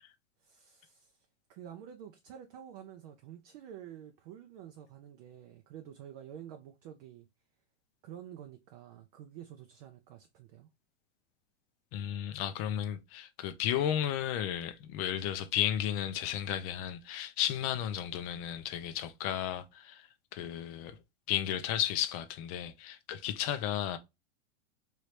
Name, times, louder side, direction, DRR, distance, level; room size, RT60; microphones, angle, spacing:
voice 1, 0.4-7.3 8.0-10.7, right 10 dB, 35° right, 0.4 m, -49 dB
voice 2, 11.9-21.0 21.3-24.0, left 10 dB, 30° left, 0.4 m, -33 dB
3.2 x 2.7 x 3.1 m
hypercardioid pair, 140°, 37 cm